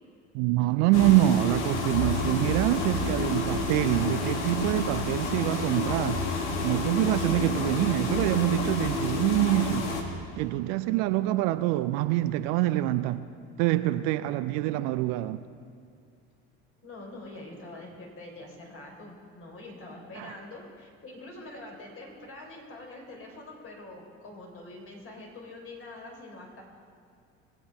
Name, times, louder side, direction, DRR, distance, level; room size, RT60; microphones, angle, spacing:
voice 1, 0.3-6.3 6.6-9.9 10.4-13.3 13.6-15.4 20.2-20.3, right 15 dB, 60° right, 0.5 m, -25 dB
sound 1, 0.9-10.0, left 3 dB, 80° left, 1.4 m, -29 dB
voice 2, 16.8-26.6, left 2 dB, 40° left, 3.8 m, -45 dB
20.0 x 8.4 x 4.3 m
hypercardioid pair, 65°, 34 cm